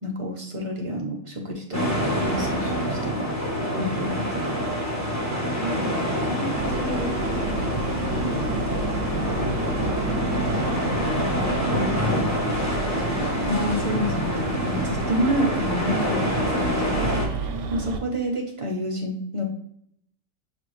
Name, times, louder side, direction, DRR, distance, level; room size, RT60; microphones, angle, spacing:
voice 1, 0.0-3.3 3.8-4.6 13.5-19.4, equal, 45° right, 0 dB, 0.4 m, -29 dB
sound 1, 1.7-17.3, equal, 15° left, 0.6 m, -26 dB
voice 2, 5.6-7.5 8.2-8.9 10.3-11.0 11.3-12.2, equal, 65° left, -5 dB, 2.0 m, -35 dB
sound 2, 6.5-18.0, right 3 dB, 70° right, 0.8 m, -31 dB
6.5 x 2.5 x 3.1 m, 0.69 s
omnidirectional pair, 1.5 m